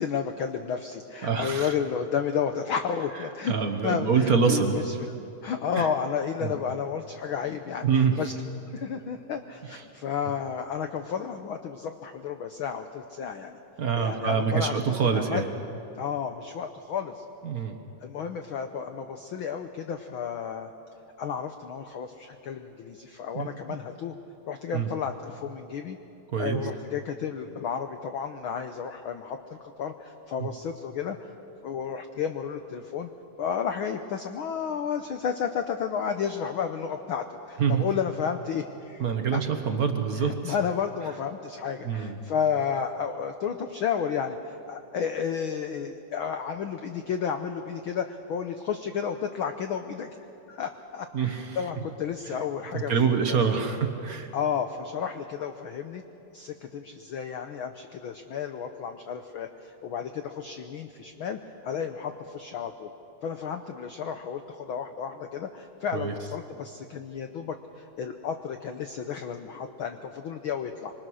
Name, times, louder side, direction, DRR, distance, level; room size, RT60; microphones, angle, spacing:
voice 1, 0.0-3.5 3.8-4.9 5.4-8.3 8.7-13.6 14.0-15.4 15.9-17.2 18.0-20.7 21.2-24.1 24.5-26.0 26.4-31.3 31.6-33.1 33.4-39.1 39.3-39.4 40.2-50.1 50.5-52.9 53.3-53.7 54.3-56.0 56.3-62.9 63.2-70.9, left 7 dB, 85° left, 7 dB, 1.1 m, -32 dB
voice 2, 1.2-1.7 3.5-4.8 5.7-5.9 6.4-6.5 7.8-8.2 13.8-15.5 17.4-17.8 23.3-23.8 24.7-24.9 26.3-26.6 30.4-30.5 37.6-37.9 39.0-40.6 41.8-42.2 51.1-51.6 52.3-52.4 52.7-54.3 65.9-66.1, right 6 dB, 55° right, 5 dB, 1.0 m, -25 dB
25.5 x 24.5 x 6.3 m, 2.8 s
omnidirectional pair, 3.4 m